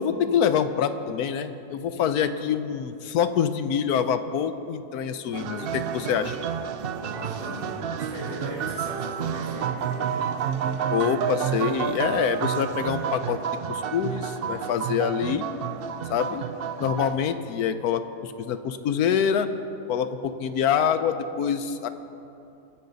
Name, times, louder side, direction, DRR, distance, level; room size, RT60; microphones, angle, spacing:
voice 1, 0.0-6.4 10.9-13.4 13.7-15.5 16.1-16.4 16.8-19.5 19.9-21.9, left 8 dB, 80° left, 11 dB, 1.2 m, -25 dB
sound 1, 5.3-17.2, right 8 dB, 85° right, 0.5 m, -30 dB
voice 2, 7.0-9.7, left 1 dB, 50° left, -6 dB, 5.0 m, -38 dB
24.5 x 10.0 x 4.0 m, 2.7 s
omnidirectional pair, 1.6 m